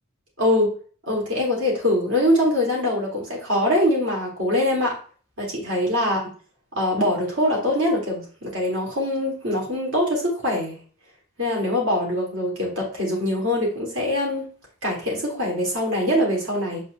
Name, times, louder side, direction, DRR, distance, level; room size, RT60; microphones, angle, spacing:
voice 1, 0.4-0.7 1.0-5.0 5.4-6.2 6.7-10.8 11.4-14.5 14.8-16.8, left 1 dB, 60° right, -2 dB, 3.2 m, -23 dB
7.4 x 5.4 x 3.4 m, 0.40 s
head